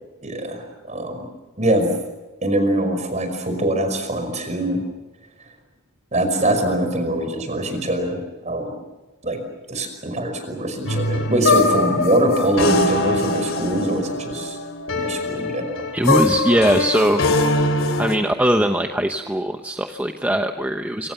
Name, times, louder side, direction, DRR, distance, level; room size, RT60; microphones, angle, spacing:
voice 1, 0.2-1.3 1.6-1.9 2.4-4.8 6.1-8.8 9.2-9.4 9.7-14.6 15.0-15.9, right 1 dB, 35° right, 6 dB, 5.5 m, -23 dB
sound 1, 10.9-18.2, left 2 dB, 65° left, 3.2 m, -22 dB
voice 2, 15.9-17.2 18.0-21.1, right 1 dB, 10° right, 5 dB, 1.0 m, -20 dB
26.0 x 26.0 x 7.0 m, 1.1 s
head